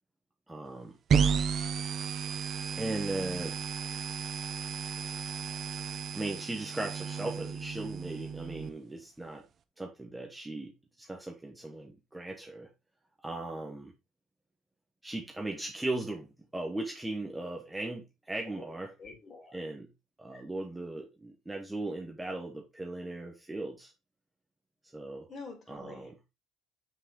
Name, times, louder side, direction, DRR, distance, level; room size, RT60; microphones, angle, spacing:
voice 1, 0.5-0.9 2.7-3.6 6.1-9.4 9.8-12.7 13.2-13.9 15.0-18.9 19.5-19.9 20.2-23.9 24.9-25.3 25.7-26.1, right 2 dB, 5° right, 1.2 m, -38 dB
sound 1, 1.1-8.7, right 6 dB, 35° right, 0.8 m, -33 dB
voice 2, 19.0-19.6 20.3-20.4 25.3-26.1, left 4 dB, 30° left, 2.9 m, -47 dB
7.6 x 6.6 x 3.9 m
cardioid pair, 170°, 0 cm